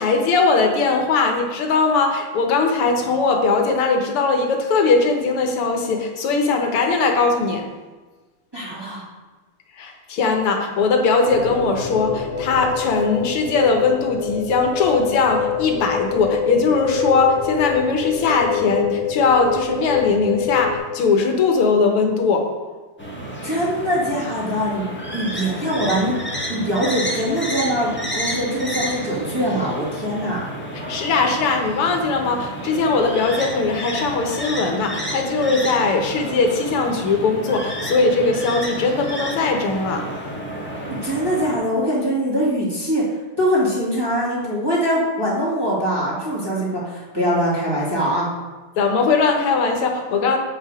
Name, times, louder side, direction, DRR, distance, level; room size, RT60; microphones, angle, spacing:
voice 1, 0.0-7.6 9.8-22.5 30.7-40.1 48.8-50.4, left 4 dB, 85° left, 3 dB, 2.0 m, -20 dB
voice 2, 8.5-9.0 23.4-24.8 25.1-26.2 26.5-30.4 40.9-48.3, equal, 10° right, -7 dB, 1.9 m, -22 dB
sound 1, 11.3-20.8, left 6 dB, 45° left, 1.6 m, -25 dB
sound 2, 23.0-41.6, equal, 5° left, 1.1 m, -30 dB
7.5 x 5.6 x 4.8 m, 1.3 s
omnidirectional pair, 2.4 m